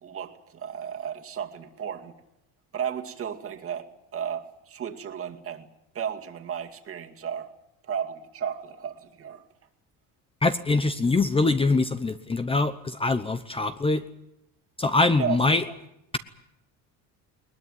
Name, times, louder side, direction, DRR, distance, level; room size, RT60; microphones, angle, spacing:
voice 1, 0.0-2.1 2.7-5.7 5.9-7.5 7.8-9.4 15.0-15.4, right 8 dB, 40° right, 4 dB, 2.3 m, -34 dB
voice 2, 10.4-14.0 14.8-15.6, left 3 dB, 15° left, 10 dB, 0.8 m, -23 dB
21.0 x 20.5 x 9.2 m, 0.84 s
cardioid pair, 145°, 36 cm